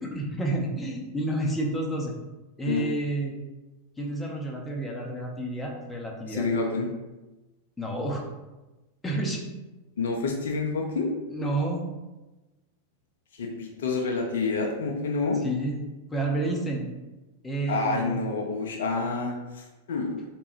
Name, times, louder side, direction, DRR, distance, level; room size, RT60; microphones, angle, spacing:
voice 1, 0.0-2.1 2.6-3.3 4.0-6.5 7.8-8.2 9.0-9.4 11.3-11.8 15.4-15.8 16.1-16.8 17.4-18.2, right 1 dB, 10° left, -1 dB, 0.7 m, -30 dB
voice 2, 6.3-6.9 10.0-11.1 13.3-15.4 17.7-20.2, left 4 dB, 60° left, 2 dB, 0.5 m, -28 dB
3.5 x 3.0 x 3.0 m, 1.1 s
figure-of-eight pair, 90°, 0 cm